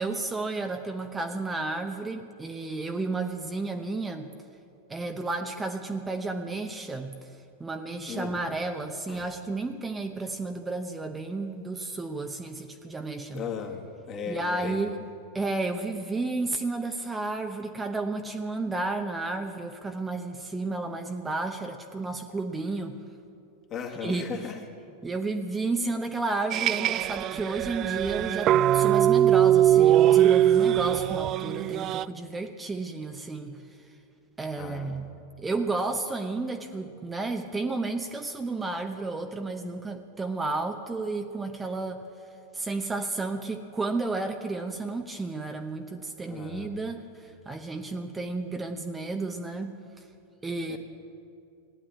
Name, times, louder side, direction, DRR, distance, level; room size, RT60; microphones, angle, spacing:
voice 1, 0.0-4.3 4.9-7.1 7.6-13.4 14.3-14.9 15.3-23.0 24.0-24.4 25.0-33.6 34.4-35.0 35.4-42.1 42.5-50.0 50.4-50.8, right 3 dB, 10° right, 5 dB, 0.9 m, -32 dB
voice 2, 8.1-8.4 9.1-9.3 13.3-14.9 23.7-24.6 34.6-34.9 46.3-46.8 50.7-50.8, left 6 dB, 30° left, 1 dB, 1.9 m, -37 dB
sound 1, 26.5-32.1, right 11 dB, 35° right, 0.3 m, -21 dB
16.5 x 10.0 x 8.5 m, 2.5 s
figure-of-eight pair, 90°, 0 cm